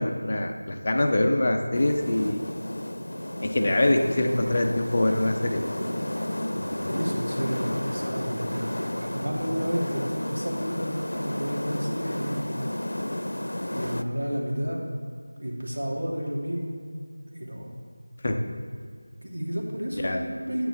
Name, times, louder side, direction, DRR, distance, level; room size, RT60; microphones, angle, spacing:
voice 1, 0.0-2.4 3.4-5.6 18.2-18.4 20.0-20.2, left 1 dB, 30° left, 3 dB, 0.6 m, -24 dB
sound 1, 1.7-14.0, left 1 dB, 85° left, 0.6 m, -32 dB
voice 2, 6.5-8.7 9.0-12.6 13.7-14.8 15.4-16.8 17.3-17.7 19.2-20.7, equal, 80° right, -2 dB, 2.4 m, -31 dB
9.3 x 8.9 x 3.5 m, 2.1 s
figure-of-eight pair, 175°, 0 cm